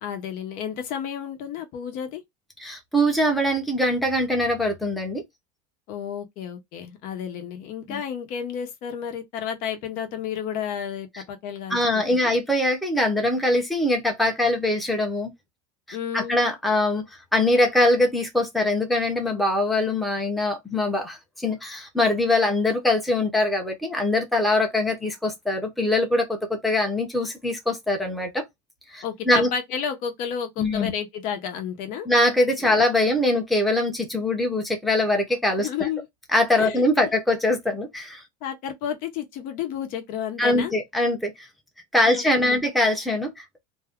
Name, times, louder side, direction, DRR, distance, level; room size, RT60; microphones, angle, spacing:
voice 1, 0.0-2.2 5.9-12.3 15.9-16.4 29.0-32.1 32.6-32.8 35.6-36.1 36.6-37.1 38.4-40.7 42.1-42.6, left 8 dB, 55° left, 0.8 m, -32 dB
voice 2, 2.6-5.2 7.9-8.0 11.7-15.3 15.9-17.1 17.3-28.4 28.9-29.5 30.6-30.9 32.1-35.9 36.3-38.2 40.4-41.5 41.9-43.6, left 1 dB, ahead, 0.8 m, -23 dB
2.7 x 2.2 x 3.5 m
supercardioid pair, 135°, 18 cm